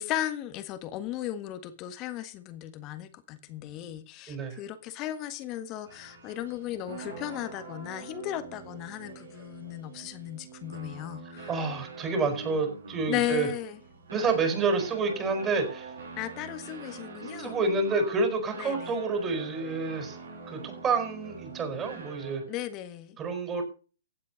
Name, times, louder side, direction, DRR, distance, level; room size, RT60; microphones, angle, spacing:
voice 1, 0.0-11.5 13.1-13.8 16.2-17.5 18.6-19.0 22.5-23.2, left 13 dB, 30° left, 1.6 m, -36 dB
voice 2, 4.3-4.6 11.5-13.5 14.1-15.9 17.4-20.2 20.5-22.4 23.2-23.6, right 4 dB, 20° right, 4.7 m, -29 dB
sound 1, 5.9-22.6, right 4 dB, 75° right, 5.8 m, -44 dB
16.0 x 8.5 x 5.3 m
hypercardioid pair, 125°, 0 cm